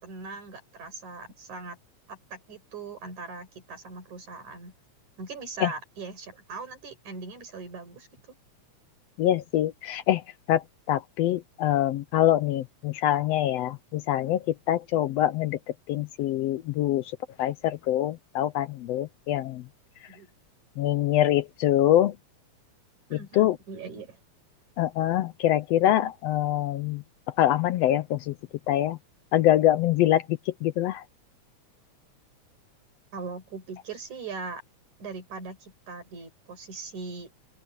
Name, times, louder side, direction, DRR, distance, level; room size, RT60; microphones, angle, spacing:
voice 1, 0.0-1.8 2.1-4.7 5.2-8.4 20.1-20.3 23.1-24.2 33.1-34.6 35.0-37.3, right 4 dB, 85° right, 6.9 m, -40 dB
voice 2, 9.2-10.2 10.5-10.6 10.9-15.6 15.9-17.0 17.4-19.6 20.8-22.1 23.1-23.6 24.8-27.0 27.4-28.3 28.7-29.0 29.3-31.0, left 13 dB, 75° left, 1.6 m, -24 dB
open air
omnidirectional pair, 3.3 m